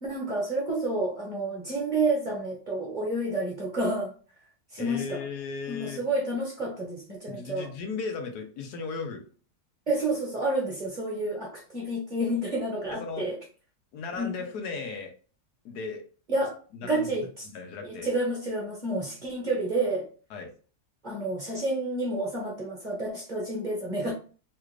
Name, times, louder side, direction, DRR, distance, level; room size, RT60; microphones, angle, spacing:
voice 1, 0.0-4.1 4.7-5.2 5.7-7.7 9.9-13.3 14.2-14.3 16.3-17.4 17.8-20.1 21.0-24.1, right 2 dB, 35° right, -2 dB, 0.9 m, -29 dB
voice 2, 4.8-6.0 7.3-9.3 12.9-13.3 13.9-15.1 15.6-16.0 16.7-17.1 17.5-18.1 20.3-20.5, left 4 dB, 80° left, 4 dB, 1.3 m, -36 dB
3.3 x 2.4 x 3.1 m, 0.38 s
omnidirectional pair, 1.7 m